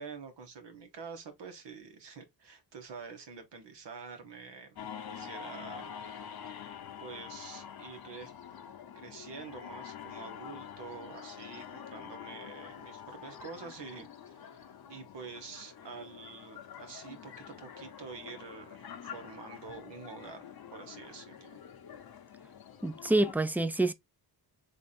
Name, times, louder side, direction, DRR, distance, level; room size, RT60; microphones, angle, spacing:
voice 1, 0.0-4.8 5.1-5.9 6.7-8.3 8.9-14.1 14.5-14.6 14.9-20.4 20.7-21.6, right 5 dB, 85° right, 1.3 m, -47 dB
sound 1, 4.8-23.3, left 8 dB, 60° left, 0.7 m, -47 dB
voice 2, 22.8-23.9, right 2 dB, 5° right, 0.4 m, -27 dB
3.5 x 2.5 x 4.2 m
wide cardioid pair, 85°, 41 cm